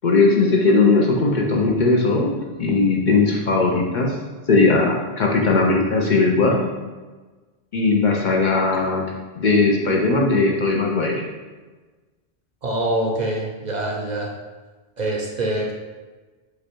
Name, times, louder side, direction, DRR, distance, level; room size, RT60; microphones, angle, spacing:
voice 1, 0.0-2.3 2.6-4.2 4.5-6.6 7.7-9.0 9.4-11.2, left 3 dB, 55° left, -1 dB, 0.7 m, -18 dB
voice 2, 12.6-14.4 15.0-15.7, right 1 dB, 50° right, -1 dB, 0.6 m, -25 dB
5.0 x 2.3 x 4.4 m, 1.3 s
omnidirectional pair, 1.1 m